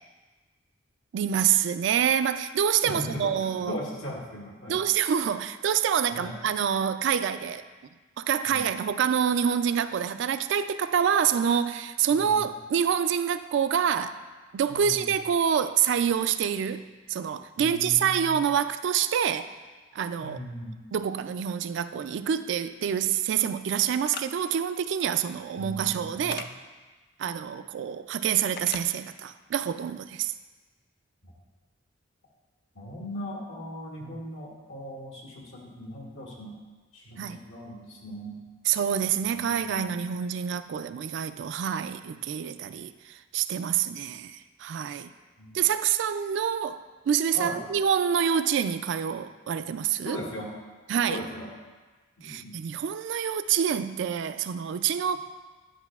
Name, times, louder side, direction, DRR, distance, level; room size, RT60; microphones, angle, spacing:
voice 1, 1.1-3.8 4.7-7.6 8.2-14.2 14.5-19.5 19.9-20.4 20.9-26.5 27.2-30.3 37.2-37.4 38.7-45.1 45.5-50.2 50.9-51.2 52.2-55.2, right 8 dB, 65° right, 12 dB, 0.3 m, -27 dB
voice 2, 2.8-4.8 6.1-6.4 8.5-8.6 12.1-12.5 14.7-15.1 17.6-18.4 20.2-20.8 25.6-26.5 31.2-31.3 32.7-36.6 36.9-38.4 39.2-39.9 45.4-45.6 47.3-47.6 50.0-50.5 51.1-51.5 52.2-52.6, equal, 90° left, -3 dB, 1.6 m, -38 dB
sound 1, 24.0-24.3 26.3-26.5 28.6-28.9, left 7 dB, 50° left, 0.3 m, -37 dB
10.0 x 5.8 x 2.4 m, 1.3 s
head